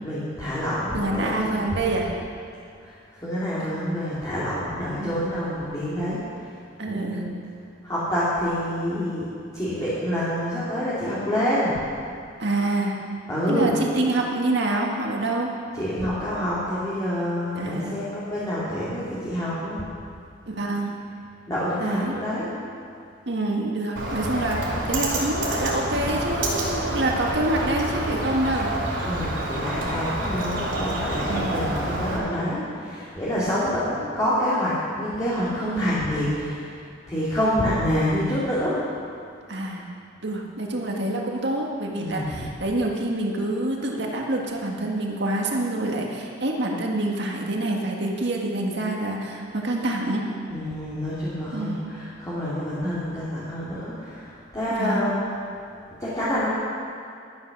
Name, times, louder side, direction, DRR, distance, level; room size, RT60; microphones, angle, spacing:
voice 1, 0.0-1.6 2.8-6.5 6.9-7.4 7.8-9.3 9.5-11.7 13.3-13.7 15.8-19.8 21.5-22.5 26.0-26.1 29.0-36.8 37.1-38.8 42.0-42.3 50.5-55.2 56.0-56.5, equal, 20° left, -10 dB, 2.6 m, -27 dB
voice 2, 0.9-2.1 4.9-5.3 6.8-7.2 12.4-13.0 13.5-15.5 17.5-18.0 20.5-20.9 21.8-22.2 23.3-28.7 31.3-31.6 33.4-33.6 35.6-35.9 39.5-39.9 40.2-50.3 51.5-51.9 54.7-55.2, right 2 dB, 65° right, -1 dB, 1.8 m, -26 dB
Bird, 24.0-32.2, right 1 dB, 85° right, 2.9 m, -28 dB
12.5 x 9.6 x 6.0 m, 2.4 s
head